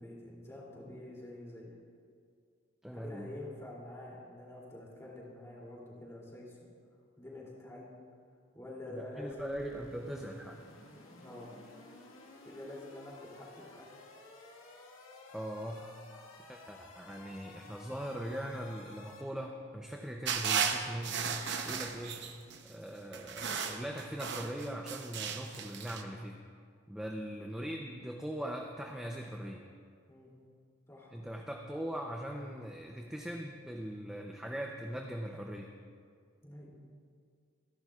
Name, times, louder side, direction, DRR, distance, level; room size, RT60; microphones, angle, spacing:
voice 1, 0.0-1.7 2.9-6.6 7.2-7.9 8.5-9.5 11.2-11.5 12.4-13.8 30.1-30.4 30.9-31.2 36.4-36.7, left 1 dB, 15° left, -5 dB, 2.7 m, -47 dB
voice 2, 2.8-3.3 8.9-10.6 15.3-21.3 21.6-22.3 22.6-26.4 26.9-29.6 31.1-35.7, equal, 5° right, 1 dB, 0.5 m, -41 dB
sound 1, 9.3-19.2, left 2 dB, 75° left, 1.6 m, -54 dB
sound 2, 20.3-22.6 23.1-26.0, right 7 dB, 55° right, 0.8 m, -35 dB
25.5 x 11.0 x 2.4 m, 2.1 s
head